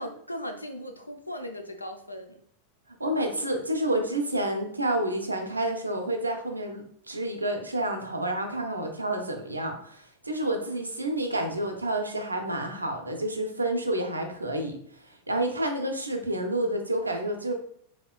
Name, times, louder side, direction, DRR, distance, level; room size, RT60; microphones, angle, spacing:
voice 1, 0.0-2.4, equal, 85° left, 5 dB, 0.4 m, -38 dB
voice 2, 3.0-14.8 15.0-17.5, right 1 dB, 80° right, 4 dB, 0.6 m, -29 dB
4.3 x 3.6 x 2.3 m, 0.66 s
figure-of-eight pair, 90°, 0 cm